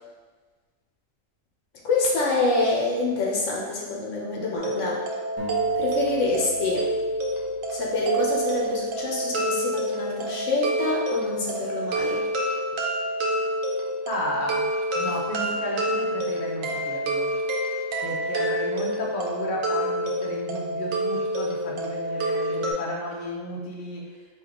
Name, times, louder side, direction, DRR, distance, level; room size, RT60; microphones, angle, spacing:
voice 1, 1.8-5.0 5.8-6.9 7.7-12.2, left 3 dB, 75° left, -3 dB, 1.1 m, -26 dB
sound 1, 4.6-22.7, right 1 dB, 80° right, 1.1 m, -28 dB
sound 2, 5.4-9.0, left 1 dB, 25° right, 1.0 m, -44 dB
voice 2, 14.0-17.3 18.0-24.2, equal, 45° left, -3 dB, 0.9 m, -33 dB
5.4 x 2.4 x 3.7 m, 1.4 s
omnidirectional pair, 1.3 m